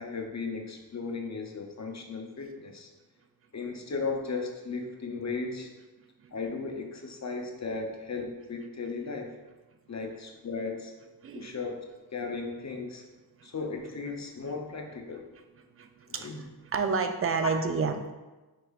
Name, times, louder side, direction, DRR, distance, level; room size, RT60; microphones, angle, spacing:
voice 1, 0.0-2.9 3.5-5.7 6.3-9.4 9.9-10.9 11.3-11.8 12.1-13.0 13.4-15.3 16.1-16.4 17.4-17.5, left 4 dB, 45° left, 3 dB, 0.6 m, -36 dB
voice 2, 15.8-16.3 16.7-18.1, right 5 dB, 35° right, 6 dB, 0.4 m, -29 dB
4.7 x 4.6 x 2.4 m, 1.2 s
wide cardioid pair, 75°, 39 cm